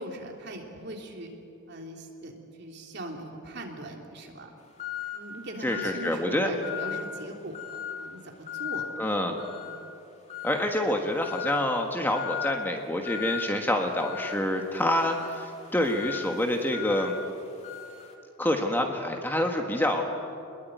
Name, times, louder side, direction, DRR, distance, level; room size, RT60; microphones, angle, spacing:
voice 1, 0.0-1.3 1.7-4.5 5.1-7.6 8.0-8.2 8.5-9.0 9.6-9.7, right 1 dB, 50° right, 1 dB, 3.3 m, -40 dB
sound 1, 4.8-5.3 5.7-6.2 6.6-7.1 7.5-8.0 8.5-8.9 9.4-9.8 10.3-10.8 11.2-11.7 12.1-12.6 13.0-13.4 14.0-18.1, left 10 dB, 30° left, 2.4 m, -37 dB
voice 2, 5.6-6.5 9.0-9.4 10.4-17.1 18.4-20.0, left 1 dB, 10° left, 3 dB, 1.5 m, -27 dB
26.5 x 21.5 x 9.3 m, 2.8 s
head